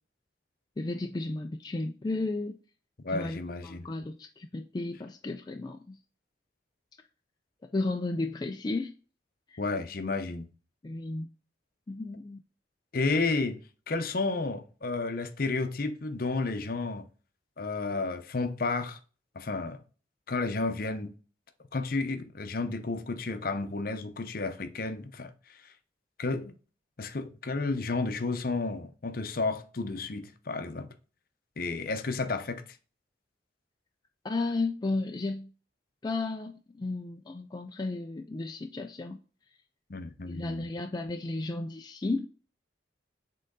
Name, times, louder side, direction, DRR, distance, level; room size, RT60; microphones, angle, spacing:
voice 1, 0.8-2.6 3.1-3.4 3.6-6.0 7.7-8.9 9.5-9.6 10.8-11.3 11.9-12.4 34.2-35.5 36.0-39.2 40.3-42.3, left 2 dB, 20° left, 0.3 m, -33 dB
voice 2, 3.0-3.8 9.6-10.5 12.9-13.6 13.9-17.1 17.6-19.0 19.4-19.8 20.3-21.1 21.7-25.3 26.2-26.5 27.0-30.9 31.6-32.6 39.9-40.7, left 3 dB, 50° left, 0.7 m, -31 dB
7.5 x 3.8 x 3.8 m
head